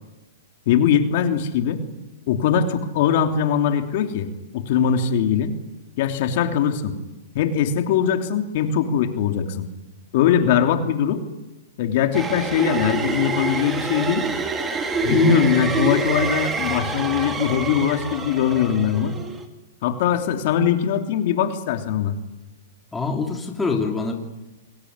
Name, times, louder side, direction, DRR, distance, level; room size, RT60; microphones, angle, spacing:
voice 1, 0.7-1.8 2.3-4.3 4.5-5.5 6.0-6.9 7.3-9.6 10.1-11.2 11.8-14.2 15.0-19.2 19.8-22.2, left 8 dB, 50° left, 6 dB, 3.1 m, -21 dB
sound 1, 12.1-19.4, right 4 dB, 15° right, 2.8 m, -26 dB
voice 2, 22.9-24.1, left 4 dB, 10° left, 2 dB, 3.3 m, -25 dB
28.0 x 21.5 x 9.7 m, 1.1 s
hypercardioid pair, 150°, 0 cm